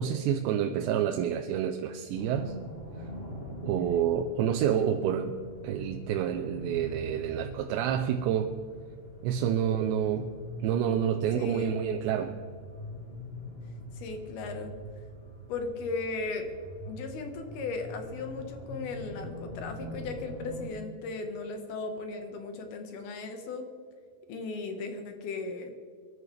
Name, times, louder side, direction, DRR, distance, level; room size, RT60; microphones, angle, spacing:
voice 1, 0.0-2.5 3.6-5.4 5.6-8.5 9.2-10.3 10.6-12.3, right 9 dB, 90° right, 4 dB, 2.9 m, -28 dB
sound 1, 2.1-20.7, equal, 15° left, 2.5 m, -43 dB
voice 2, 11.3-11.8 13.9-14.7 15.5-16.5 16.9-23.7 24.3-25.7, left 3 dB, 70° left, 5 dB, 3.1 m, -36 dB
23.0 x 11.5 x 3.3 m, 2.1 s
omnidirectional pair, 4.9 m